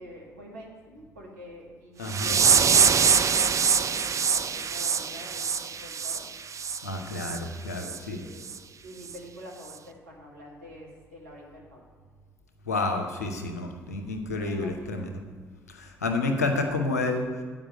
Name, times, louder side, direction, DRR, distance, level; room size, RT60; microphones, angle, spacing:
voice 1, 0.0-6.2 7.4-8.5 8.8-11.8 14.4-14.9, equal, 85° right, -2 dB, 1.6 m, -46 dB
voice 2, 2.0-2.4 6.8-8.2 12.7-15.1 15.7-17.3, left 2 dB, 90° left, 4 dB, 0.7 m, -29 dB
sound 1, 2.1-6.8 7.2-7.4 7.8-8.0 8.5-8.6 9.1-9.2, right 6 dB, 40° right, 0.5 m, -24 dB
8.7 x 5.2 x 7.6 m, 1.5 s
figure-of-eight pair, 45°, 8 cm